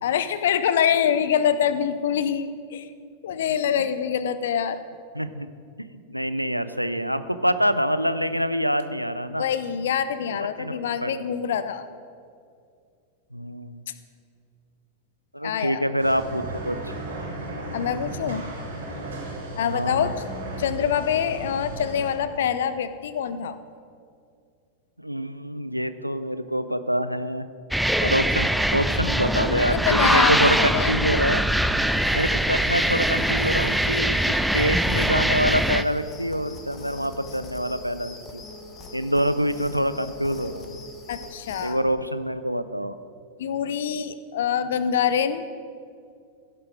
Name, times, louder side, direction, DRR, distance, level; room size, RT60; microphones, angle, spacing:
voice 1, 0.0-2.9 3.2-4.8 9.4-11.9 15.4-15.9 17.7-18.4 19.6-20.1 20.6-23.6 29.7-30.3 30.7-31.0 41.1-41.9 43.4-45.4, left 8 dB, 60° left, 13 dB, 0.6 m, -25 dB
voice 2, 5.1-5.5 5.8-9.5 10.3-11.2 13.3-13.8 15.3-16.8 19.7-20.1 25.0-27.5 28.0-31.5 32.1-38.4 38.9-40.8 41.6-42.9, equal, 90° right, 12 dB, 0.5 m, -26 dB
sound 1, 16.0-22.1, right 1 dB, 65° right, 3.2 m, -35 dB
sound 2, 27.7-35.8, right 1 dB, ahead, 0.4 m, -22 dB
sound 3, 31.8-41.8, left 2 dB, 25° left, 1.3 m, -42 dB
15.5 x 7.6 x 4.9 m, 2.3 s
figure-of-eight pair, 90°, 0 cm